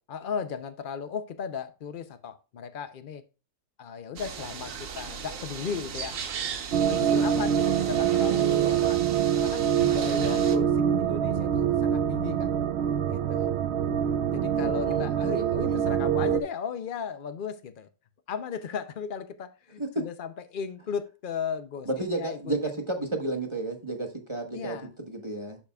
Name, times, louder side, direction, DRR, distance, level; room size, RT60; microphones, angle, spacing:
voice 1, 0.1-3.2 3.8-6.2 6.8-9.0 9.4-12.5 13.1-13.6 14.3-17.9 18.3-21.9 22.2-22.8 24.5-24.9, left 7 dB, 75° left, 0.4 m, -36 dB
sound 1, 4.2-10.6, right 7 dB, 55° right, 1.2 m, -37 dB
sound 2, 6.7-16.4, right 9 dB, 75° right, 0.6 m, -25 dB
voice 2, 15.3-15.8 19.8-19.9 21.9-25.6, right 2 dB, 20° right, 1.0 m, -32 dB
11.5 x 5.0 x 2.3 m
omnidirectional pair, 1.7 m